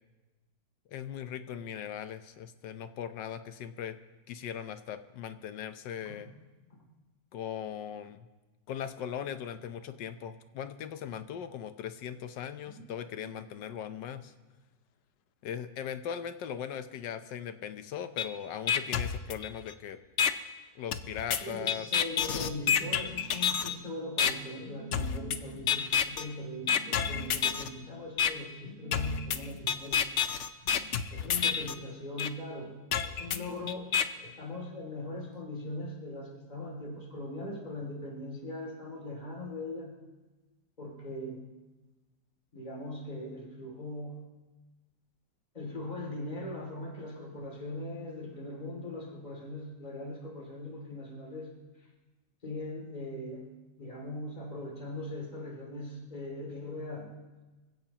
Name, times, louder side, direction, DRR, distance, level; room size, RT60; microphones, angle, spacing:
voice 1, 0.9-4.0 4.3-6.3 7.3-8.3 8.7-14.3 15.4-20.0 20.7-21.9, left 9 dB, 80° left, 10 dB, 1.4 m, -39 dB
voice 2, 12.6-13.3 21.4-30.0 30.6-39.9 40.8-41.4 42.5-44.2 45.5-51.5 51.8-51.9 52.4-53.5 53.8-57.1, left 1 dB, 25° left, 0 dB, 2.6 m, -40 dB
sound 1, 18.2-18.3 18.7-19.7 20.2-20.3 20.9-23.7 24.2-24.3 24.9-25.4 25.7-26.2 26.7-27.7 28.2-28.3 28.9-31.7 32.2-32.3 32.9-34.0, left 7 dB, 60° left, 0.7 m, -28 dB
25.5 x 16.0 x 2.9 m, 1.2 s
omnidirectional pair, 1.9 m